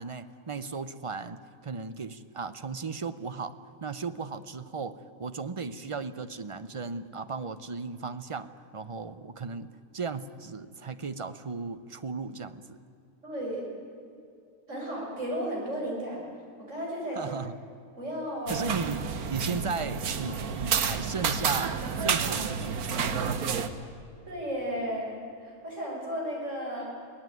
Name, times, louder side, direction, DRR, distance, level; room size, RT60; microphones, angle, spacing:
voice 1, 0.0-12.8 17.1-17.5 18.5-19.0 19.3-23.5, right 4 dB, 35° right, 12 dB, 0.5 m, -36 dB
voice 2, 13.2-13.6 14.7-16.2 16.7-17.2 18.0-18.6 24.3-26.9, equal, 55° right, -2 dB, 6.5 m, -34 dB
sound 1, 18.5-23.7, right 6 dB, 80° right, 1.6 m, -30 dB
23.0 x 18.0 x 9.3 m, 2.5 s
omnidirectional pair, 1.5 m